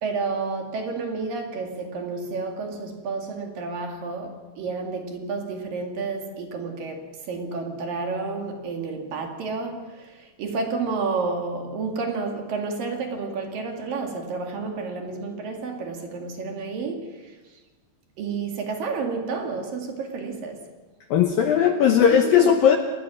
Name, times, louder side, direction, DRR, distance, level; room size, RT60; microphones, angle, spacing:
voice 1, 0.0-17.4 18.2-20.7 22.1-22.7, right 4 dB, 55° right, 3.5 m, -30 dB
voice 2, 21.1-22.8, left 8 dB, 75° left, 2.2 m, -17 dB
28.5 x 19.5 x 6.2 m
omnidirectional pair, 5.2 m